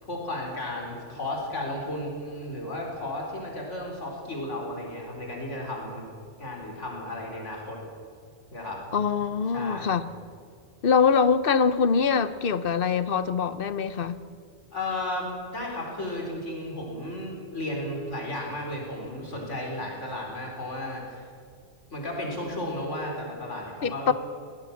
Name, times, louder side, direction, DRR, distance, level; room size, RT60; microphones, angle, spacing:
voice 1, 0.0-6.0 6.4-7.8 8.5-8.8 9.5-9.9 14.7-21.2 21.9-24.1, left 1 dB, 85° left, 4.5 m, -34 dB
voice 2, 8.9-10.1 10.8-14.2 23.8-24.1, left 6 dB, 55° left, 1.0 m, -23 dB
22.0 x 18.5 x 7.3 m
omnidirectional pair, 1.2 m